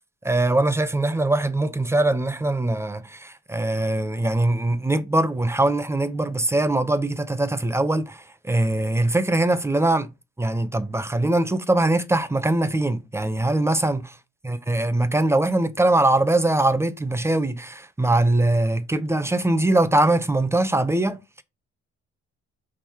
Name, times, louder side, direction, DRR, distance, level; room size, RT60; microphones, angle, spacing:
voice 1, 0.2-10.1 10.4-14.1 14.4-21.2, right 2 dB, 10° right, 0.7 m, -22 dB
5.9 x 3.6 x 4.6 m
cardioid pair, 90°, 30 cm